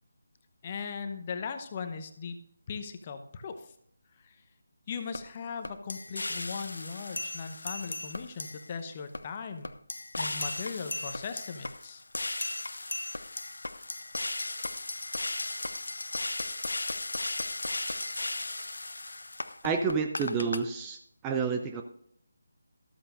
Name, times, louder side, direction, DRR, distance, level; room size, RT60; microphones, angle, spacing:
voice 1, 0.6-2.4 2.7-3.6 4.2-4.4 4.9-9.7 10.2-12.0, left 5 dB, 25° left, 8 dB, 0.9 m, -38 dB
sound 1, 5.1-5.2 5.6-8.7 9.1-9.2 9.6-20.6, left 2 dB, 60° left, 0.7 m, -36 dB
voice 2, 19.6-21.8, right 5 dB, 10° right, 4 dB, 0.5 m, -30 dB
13.5 x 13.0 x 2.6 m, 0.70 s
figure-of-eight pair, 155°, 0 cm